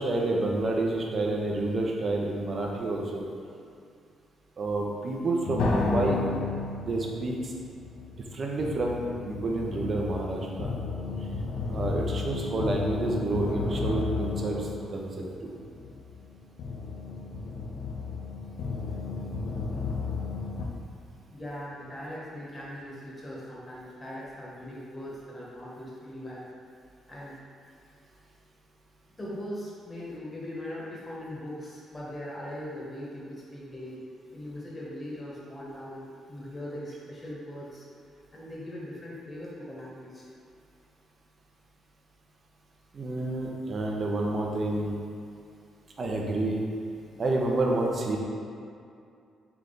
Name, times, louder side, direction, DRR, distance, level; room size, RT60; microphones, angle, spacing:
voice 1, 0.0-3.3 4.6-6.2 6.8-7.5 8.3-9.0 9.3-10.7 11.7-15.5 42.9-44.9 46.0-46.6 47.2-48.2, right 2 dB, 45° right, -1 dB, 0.7 m, -29 dB
sound 1, 5.4-20.6, left 4 dB, 80° left, 0.5 m, -33 dB
voice 2, 21.3-26.5 27.1-27.4 29.2-34.1 34.3-37.9 38.3-40.3, left 1 dB, 25° left, -6 dB, 1.2 m, -40 dB
3.5 x 3.2 x 3.9 m, 2.4 s
cardioid pair, 90°, 0 cm